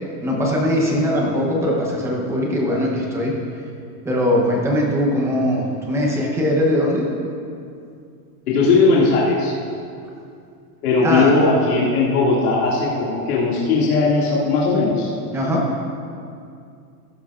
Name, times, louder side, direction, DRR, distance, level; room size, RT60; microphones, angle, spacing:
voice 1, 0.2-3.4 4.0-7.1 11.0-11.3 15.3-15.7, equal, 5° right, -2 dB, 0.8 m, -20 dB
voice 2, 8.5-9.5 10.8-15.1, left 3 dB, 70° left, -6 dB, 2.3 m, -18 dB
15.0 x 11.5 x 2.4 m, 2.4 s
supercardioid pair, 170°, 47 cm